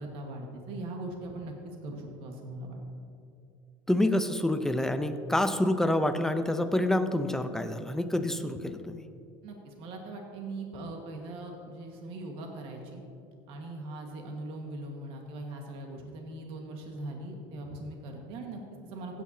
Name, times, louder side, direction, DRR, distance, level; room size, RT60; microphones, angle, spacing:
voice 1, 0.0-2.8 9.4-13.0 13.5-19.2, right 2 dB, 60° right, 2 dB, 1.6 m, -40 dB
voice 2, 3.9-9.0, left 1 dB, 5° left, 8 dB, 0.6 m, -27 dB
16.0 x 9.3 x 2.8 m, 2.5 s
supercardioid pair, 105°, 11 cm